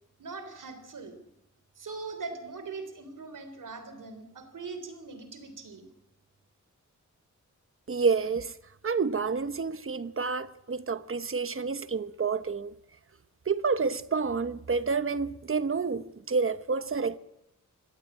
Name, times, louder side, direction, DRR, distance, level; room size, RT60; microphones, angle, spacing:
voice 1, 0.2-1.2 1.8-5.9, right 4 dB, 90° right, 3.6 m, -41 dB
voice 2, 7.9-8.6 8.8-12.7 13.5-17.2, right 5 dB, 45° right, 1.0 m, -29 dB
23.5 x 17.0 x 8.4 m
wide cardioid pair, 120°, 31 cm